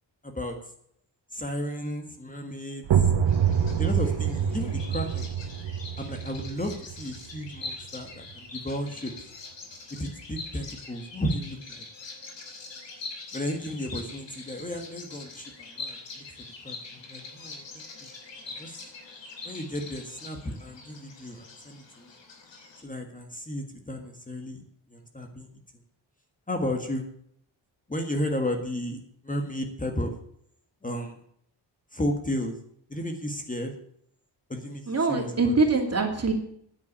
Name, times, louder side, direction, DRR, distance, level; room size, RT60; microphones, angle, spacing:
voice 1, 0.2-0.6 1.3-3.1 3.8-5.3 6.0-9.3 10.0-11.8 13.3-18.1 18.4-18.8 19.4-22.2 22.8-24.6 24.9-25.5 26.5-27.0 27.9-30.1 30.8-31.2 31.9-32.6 32.9-33.7 34.5-35.5, left 1 dB, 20° left, 4 dB, 1.7 m, -33 dB
sound 1, 2.8-8.4, right 8 dB, 80° right, 1.3 m, -27 dB
Bird vocalization bird call bird song, 3.3-22.8, left 3 dB, 85° left, 3.3 m, -43 dB
voice 2, 34.9-36.3, right 3 dB, 35° right, 2 dB, 2.7 m, -24 dB
10.0 x 8.3 x 8.6 m, 0.67 s
wide cardioid pair, 135°, 43 cm